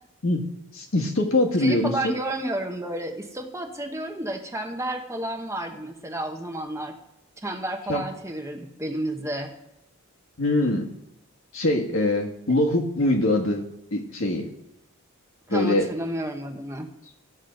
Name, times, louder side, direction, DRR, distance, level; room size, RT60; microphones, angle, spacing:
voice 1, 0.7-1.9 7.9-8.0 10.4-10.9 11.5-13.6 13.9-14.4 15.5-15.9, left 2 dB, 65° left, 2 dB, 1.6 m, -23 dB
voice 2, 1.6-7.0 7.4-9.5 15.5-16.9, right 1 dB, 15° right, 4 dB, 0.9 m, -31 dB
13.5 x 7.4 x 5.2 m, 0.88 s
head